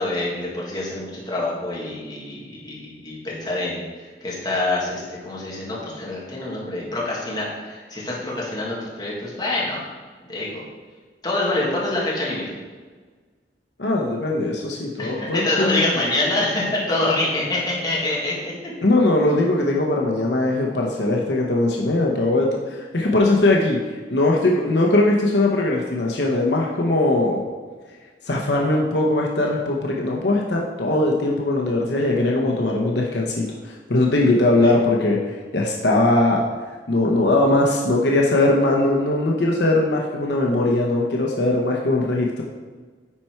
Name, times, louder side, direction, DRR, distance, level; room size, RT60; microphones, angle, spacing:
voice 1, 0.0-9.9 10.3-10.6 11.2-12.6 15.0-18.7 34.6-34.7, left 2 dB, 25° left, -5 dB, 2.1 m, -26 dB
voice 2, 13.8-15.9 18.8-23.8 24.1-27.4 28.3-35.2 35.5-36.5 36.9-42.4, left 2 dB, 70° left, -1 dB, 1.0 m, -20 dB
10.0 x 4.4 x 4.6 m, 1.5 s
head